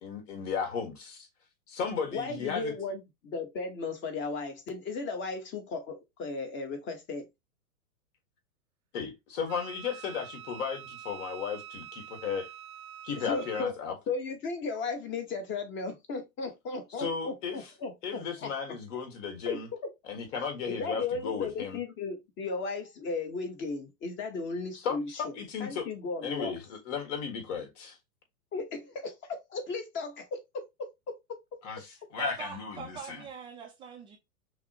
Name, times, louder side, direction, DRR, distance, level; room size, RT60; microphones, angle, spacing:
voice 1, 0.0-1.3 1.7-2.7 8.9-12.5 13.0-13.9 17.0-17.6 18.0-19.7 20.1-21.8 24.8-25.9 26.2-27.9 31.6-33.2, left 6 dB, 55° left, 1.7 m, -35 dB
voice 2, 2.1-7.3 13.2-13.7 14.1-18.8 19.4-19.6 20.7-25.3 25.6-26.5 28.5-30.6 31.3-31.4, left 4 dB, 25° left, 1.0 m, -35 dB
Wind instrument woodwind instrument, 9.5-13.7, right 10 dB, 70° right, 0.5 m, -46 dB
voice 3, 32.2-34.2, right 6 dB, 10° right, 0.4 m, -43 dB
5.7 x 2.1 x 2.8 m
hypercardioid pair, 115°, 44 cm